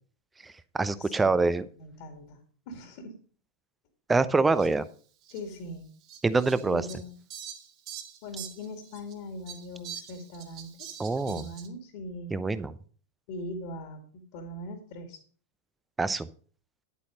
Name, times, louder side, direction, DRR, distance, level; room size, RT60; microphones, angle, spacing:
voice 1, 0.4-1.7 4.1-4.9 6.2-6.8 11.0-11.4 12.3-12.7 16.0-16.3, right 3 dB, 10° right, 15 dB, 0.7 m, -25 dB
voice 2, 1.0-3.2 5.3-5.9 6.7-7.2 8.2-12.4 13.3-15.2, left 1 dB, 45° left, 5 dB, 2.2 m, -41 dB
Fowl, 4.6-4.7 5.2-5.4 6.1-9.1 9.5-11.7, right 9 dB, 40° right, 2.0 m, -44 dB
10.5 x 8.3 x 5.1 m, 0.43 s
figure-of-eight pair, 90°, 0 cm